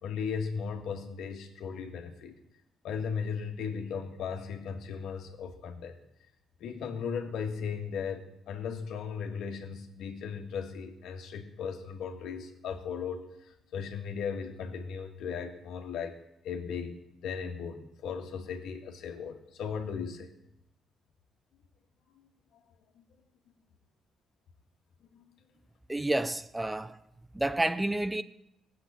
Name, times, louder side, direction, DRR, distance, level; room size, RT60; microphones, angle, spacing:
voice 1, 0.0-2.4 2.8-6.0 6.6-16.1 16.4-20.3 23.0-23.1 25.1-25.3, left 6 dB, 80° left, 1.9 m, -37 dB
voice 2, 25.9-27.0 27.3-28.2, right 1 dB, 10° right, 0.6 m, -29 dB
16.5 x 7.8 x 8.7 m
cardioid pair, 90°, 0 cm